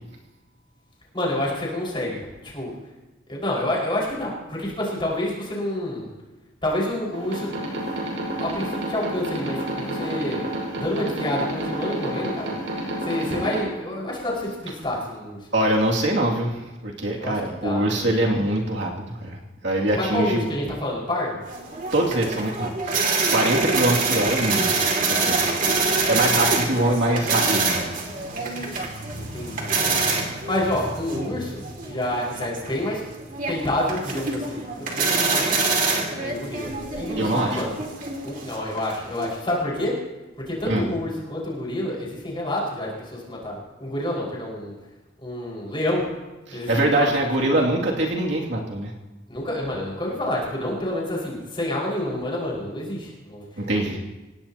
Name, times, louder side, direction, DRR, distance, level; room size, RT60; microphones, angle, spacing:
voice 1, 1.1-2.8 3.3-6.1 6.6-7.5 8.4-10.4 10.8-12.5 13.0-15.5 17.1-18.1 19.9-21.4 29.1-29.7 30.4-33.0 33.5-35.5 36.1-36.7 37.0-37.8 38.2-40.0 40.4-44.7 45.2-46.1 46.5-47.1 47.6-47.7 49.3-53.4, left 1 dB, 25° left, -5 dB, 5.5 m, -28 dB
sound 1, 7.1-13.6, right 1 dB, 80° right, 6.1 m, -30 dB
voice 2, 15.5-19.4 19.6-20.5 21.9-23.0 23.3-24.7 25.1-25.5 26.1-27.8 37.2-37.6 40.7-40.8 46.5-48.9 53.6-54.0, right 1 dB, 60° right, -2 dB, 2.6 m, -23 dB
sound 2, 21.5-39.4, right 3 dB, 45° right, 2.5 m, -26 dB
27.5 x 17.5 x 3.0 m, 1.1 s
head